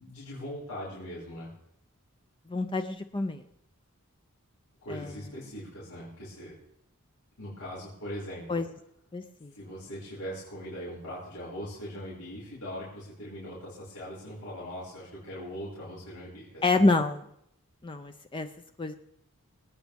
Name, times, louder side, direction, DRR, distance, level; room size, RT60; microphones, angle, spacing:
voice 1, 0.0-1.5 4.8-6.6 7.4-8.6 9.5-16.8, equal, 90° left, -7 dB, 5.8 m, -40 dB
voice 2, 2.5-3.4 4.9-5.1 8.5-8.7 9.1-9.5 16.6-17.2 17.8-18.5 18.8-18.9, left 3 dB, 25° left, 7 dB, 0.5 m, -27 dB
25.0 x 9.4 x 3.5 m, 0.75 s
head